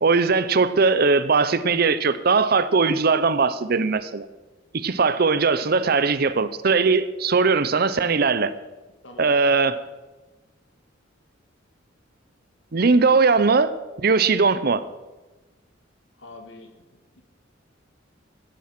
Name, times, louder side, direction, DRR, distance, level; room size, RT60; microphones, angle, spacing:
voice 1, 0.0-4.3 4.7-8.5 9.2-9.8 12.7-13.7 14.0-14.8, right 4 dB, 50° right, 15 dB, 0.6 m, -20 dB
voice 2, 16.2-16.9, left 2 dB, 70° left, 5 dB, 2.2 m, -44 dB
16.0 x 8.5 x 5.9 m, 1.1 s
head